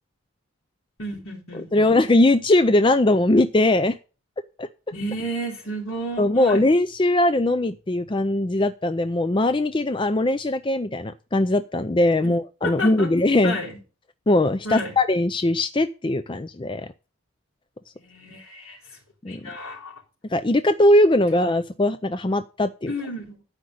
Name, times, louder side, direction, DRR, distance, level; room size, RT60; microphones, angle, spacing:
voice 1, 1.0-1.9 4.9-6.6 12.2-12.3 12.6-13.1 13.4-13.8 14.6-14.9 17.9-19.0 19.3-20.0 22.9-23.4, equal, 75° left, 0 dB, 3.5 m, -32 dB
voice 2, 1.7-4.0 4.6-4.7 6.2-13.6 14.3-16.9 19.2-19.4 20.3-22.9, left 1 dB, 20° left, 11 dB, 0.4 m, -20 dB
12.5 x 5.3 x 6.2 m, 0.34 s
head